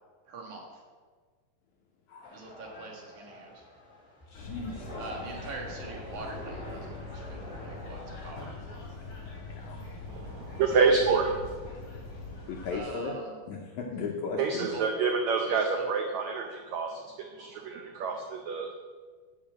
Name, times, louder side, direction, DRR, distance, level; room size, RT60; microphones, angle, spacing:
voice 1, 0.3-0.8 2.3-3.6 5.0-8.8 10.6-11.5 12.7-13.4 14.5-14.9 15.5-15.9, right 3 dB, 60° right, 0 dB, 2.8 m, -43 dB
voice 2, 2.1-2.4 4.3-4.9 9.5-9.8 12.5-13.2 13.5-14.7, left 4 dB, 75° left, 0 dB, 1.8 m, -36 dB
sound 1, 2.2-8.3, left 1 dB, 15° left, 2.2 m, -46 dB
sound 2, 4.3-12.8, left 3 dB, 40° left, 2.8 m, -42 dB
voice 3, 10.1-11.3 14.4-18.7, right 5 dB, 85° right, 3 dB, 1.6 m, -28 dB
7.4 x 6.9 x 7.6 m, 1.5 s
omnidirectional pair, 4.2 m